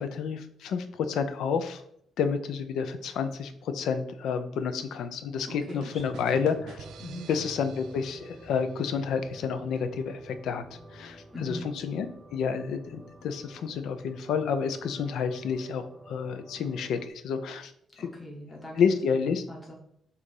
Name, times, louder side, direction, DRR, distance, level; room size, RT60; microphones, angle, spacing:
voice 1, 0.0-1.8 2.2-6.9 7.3-12.1 12.3-18.1 18.8-19.4, left 6 dB, 75° left, 10 dB, 0.6 m, -30 dB
voice 2, 5.5-6.4 7.0-7.3 11.3-11.7 18.0-18.8 19.5-19.7, left 1 dB, 10° left, -3 dB, 1.0 m, -41 dB
sound 1, 5.5-9.2, right 6 dB, 80° right, 0.6 m, -48 dB
sound 2, 6.0-17.1, right 1 dB, 10° right, 0.8 m, -50 dB
7.0 x 2.6 x 5.4 m, 0.70 s
cardioid pair, 170°, 0 cm